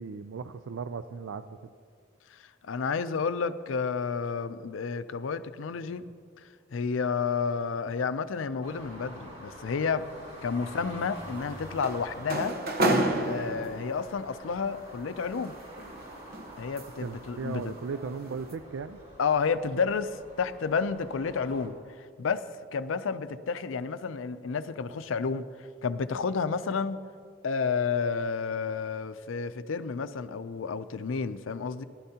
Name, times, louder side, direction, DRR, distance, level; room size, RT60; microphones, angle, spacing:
voice 1, 0.0-1.6 17.0-19.0, right 5 dB, 80° right, 10 dB, 0.4 m, -37 dB
voice 2, 2.3-6.1 6.4-10.1 10.4-12.6 13.2-15.5 16.5-17.8 19.2-25.5 25.8-27.0 27.4-31.8, left 5 dB, 85° left, 13 dB, 0.5 m, -31 dB
sound 1, 8.6-21.7, equal, 35° right, 3.4 m, -47 dB
sound 2, 11.1-14.1 15.2-17.2 17.6-17.9 18.3-18.5, right 1 dB, 50° right, 1.0 m, -30 dB
18.5 x 11.5 x 2.9 m, 2.2 s
head